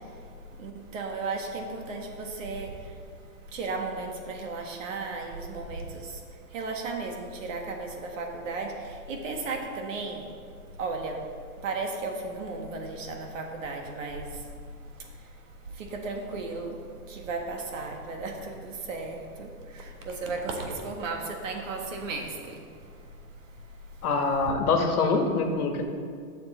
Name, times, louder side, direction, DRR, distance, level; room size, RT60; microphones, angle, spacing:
voice 1, 0.6-2.7 3.5-6.2 6.5-8.7 9.1-10.3 10.8-11.2 11.6-14.3 15.8-16.8 17.1-19.5 19.7-22.6, right 3 dB, 60° right, 2 dB, 1.6 m, -34 dB
voice 2, 24.0-25.8, left 4 dB, 80° left, 4 dB, 1.5 m, -24 dB
11.0 x 6.7 x 4.1 m, 2.2 s
hypercardioid pair, 160°, 44 cm